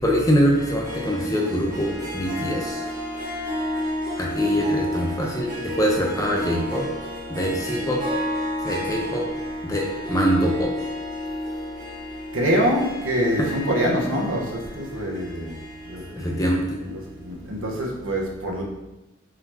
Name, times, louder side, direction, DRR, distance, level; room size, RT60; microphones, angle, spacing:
voice 1, 0.0-2.8 4.2-6.8 7.3-8.0 8.6-9.2 9.6-10.7 13.4-13.5 16.1-16.8, equal, 15° left, -2 dB, 0.9 m, -23 dB
Harp, 0.5-17.3, left 1 dB, 40° right, 1.6 m, -31 dB
voice 2, 12.3-15.6 15.9-16.4 16.9-18.6, equal, 80° right, -2 dB, 1.4 m, -25 dB
7.4 x 4.3 x 3.0 m, 0.97 s
head